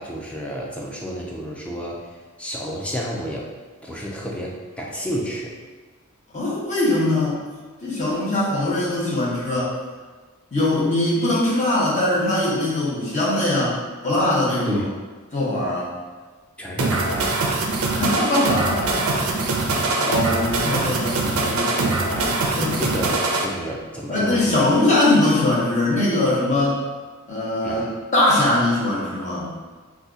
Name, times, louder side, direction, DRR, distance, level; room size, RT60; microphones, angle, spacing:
voice 1, 0.0-2.0 2.4-3.5 3.8-4.5 4.8-5.6 14.7-14.9 16.6-17.4 22.0-22.4 22.8-24.8 27.6-27.9, equal, 5° left, -3 dB, 0.4 m, -30 dB
voice 2, 6.3-7.4 7.8-9.8 10.5-13.8 14.0-14.9 15.3-15.9 17.9-22.8 24.1-26.8 27.3-27.9 28.1-29.5, left 1 dB, 35° left, -7 dB, 0.9 m, -22 dB
sound 1, 16.8-23.4, right 3 dB, 80° right, 0.4 m, -23 dB
2.6 x 2.4 x 3.6 m, 1.4 s
head